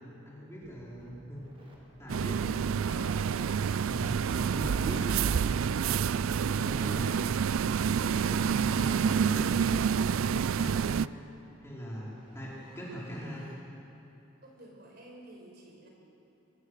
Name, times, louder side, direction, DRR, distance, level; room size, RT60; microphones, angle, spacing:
voice 1, 0.2-1.4 2.0-3.1 3.4-5.1 5.6-7.3 7.8-9.8 10.3-11.1 11.6-13.5, equal, 15° left, -6 dB, 4.4 m, -41 dB
sound 1, 2.1-11.1, right 7 dB, 85° right, 0.4 m, -28 dB
sound 2, 11.4-13.5, right 1 dB, 25° right, 3.9 m, -58 dB
voice 2, 14.4-15.9, right 1 dB, 50° right, 0 dB, 4.8 m, -51 dB
23.5 x 21.0 x 6.6 m, 2.8 s
head